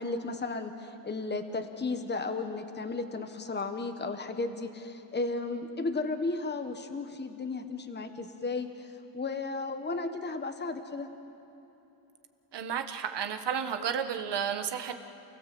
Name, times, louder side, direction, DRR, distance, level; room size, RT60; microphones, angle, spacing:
voice 1, 0.0-11.1, left 3 dB, 25° left, 7 dB, 1.4 m, -34 dB
voice 2, 12.5-14.9, right 8 dB, 70° right, 7 dB, 1.5 m, -32 dB
28.5 x 16.5 x 7.9 m, 3.0 s
cardioid pair, 100°, 44 cm